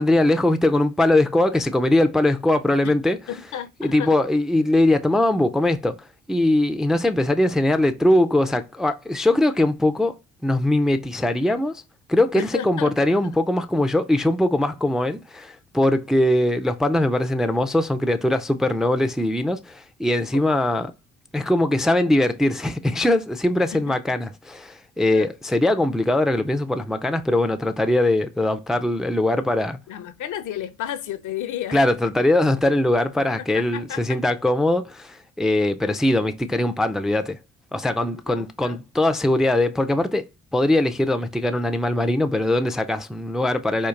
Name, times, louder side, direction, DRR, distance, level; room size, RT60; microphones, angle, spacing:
voice 1, 0.0-3.2 3.8-6.0 6.3-10.1 10.4-11.8 12.1-20.9 21.3-29.8 31.7-37.4 37.7-40.2 40.5-43.9, left 1 dB, ahead, 0.4 m, -21 dB
voice 2, 3.3-4.2 12.3-12.9 13.2-13.4 20.3-20.8 23.7-23.9 25.1-25.3 29.9-31.8 33.4-34.2 38.3-38.8, left 10 dB, 60° left, 0.6 m, -33 dB
4.5 x 2.5 x 2.4 m
supercardioid pair, 55°, 34 cm